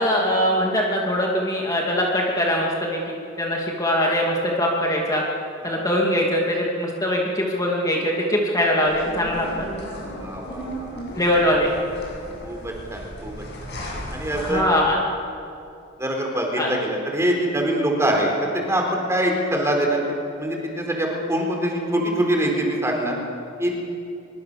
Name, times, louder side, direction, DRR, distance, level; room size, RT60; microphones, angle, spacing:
voice 1, 0.0-5.2 5.6-9.5 11.2-11.7 14.3-15.0 16.6-16.7, equal, 15° left, -3 dB, 2.6 m, -22 dB
sound 1, 8.8-14.5, equal, 55° left, 7.5 m, -36 dB
voice 2, 10.1-11.0 12.4-13.4 14.1-14.8 16.0-20.0 20.4-23.1 23.6-23.8, right 1 dB, 15° right, 1 dB, 4.2 m, -24 dB
24.5 x 22.5 x 6.9 m, 2.5 s
head